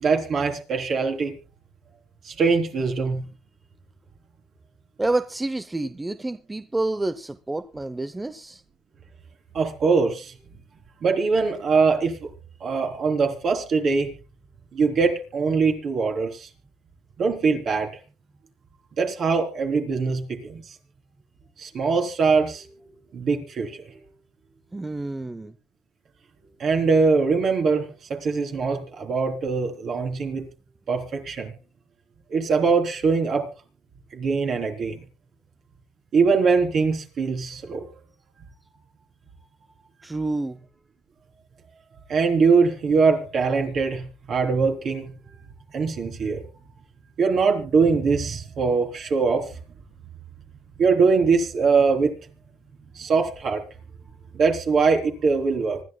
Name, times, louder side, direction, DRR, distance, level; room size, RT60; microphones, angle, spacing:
voice 1, 0.0-1.3 2.2-3.2 9.5-10.3 11.0-12.2 12.6-14.1 14.7-16.5 17.2-17.9 19.0-20.6 21.6-22.7 23.1-24.0 26.6-30.5 30.9-31.5 32.3-33.5 34.1-35.0 36.1-38.0 42.1-45.1 45.7-46.4 47.2-49.5 50.8-52.1 53.0-53.6 54.3-55.8, right 4 dB, 55° right, 3.6 m, -22 dB
voice 2, 5.0-8.6 24.7-25.5 40.0-40.6, right 2 dB, 15° right, 0.6 m, -28 dB
25.5 x 12.0 x 2.3 m
supercardioid pair, 90°, 0 cm